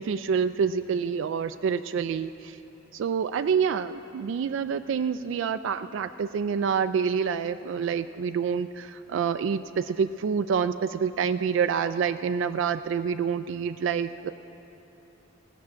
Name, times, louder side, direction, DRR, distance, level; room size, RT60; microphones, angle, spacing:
voice 1, 0.0-2.6 2.9-14.3, right 6 dB, 70° right, 10 dB, 0.3 m, -27 dB
16.5 x 6.1 x 8.5 m, 3.0 s
head